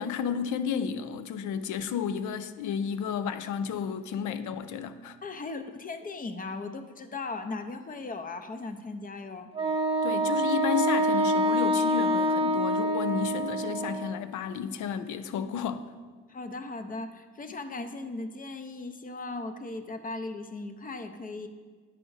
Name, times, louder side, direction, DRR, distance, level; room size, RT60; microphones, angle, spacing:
voice 1, 0.0-5.2 10.0-15.9, left 7 dB, 75° left, 0.5 m, -32 dB
voice 2, 5.2-9.5 16.3-21.5, left 3 dB, 30° left, 0.6 m, -37 dB
Wind instrument woodwind instrument, 9.5-14.2, right 1 dB, 20° right, 0.6 m, -26 dB
9.1 x 4.9 x 3.9 m
cardioid pair, 90°, 30 cm